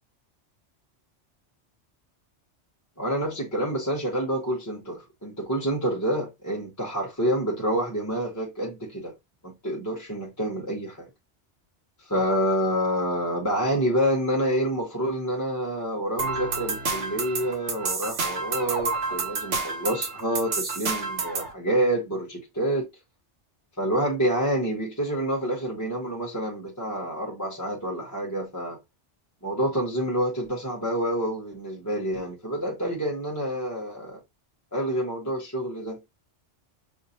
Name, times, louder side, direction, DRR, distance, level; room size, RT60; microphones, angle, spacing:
voice 1, 3.0-9.1 9.4-11.1 12.1-22.9 23.8-28.8 29.4-34.2 34.7-36.0, equal, 15° left, 0.9 m, -28 dB
sound 1, 16.2-21.5, right 4 dB, 80° right, 1.3 m, -29 dB
5.5 x 2.7 x 2.7 m
omnidirectional pair, 1.2 m